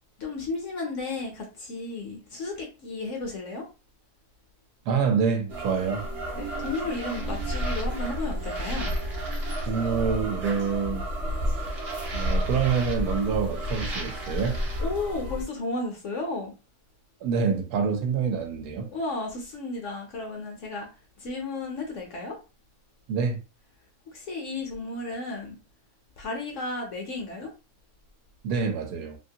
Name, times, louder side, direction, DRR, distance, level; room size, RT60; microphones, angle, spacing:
voice 1, 0.2-3.7 6.4-8.9 14.8-16.5 18.9-20.9 21.2-22.4 24.1-25.6 26.2-27.5, left 3 dB, 60° left, 0.8 m, -33 dB
voice 2, 4.9-6.0 9.7-11.0 12.1-14.6 17.2-18.9 23.1-23.4 28.4-29.2, right 6 dB, 75° right, 1.1 m, -26 dB
sound 1, 5.5-15.4, equal, 50° right, 0.8 m, -31 dB
2.9 x 2.5 x 2.7 m
omnidirectional pair, 1.7 m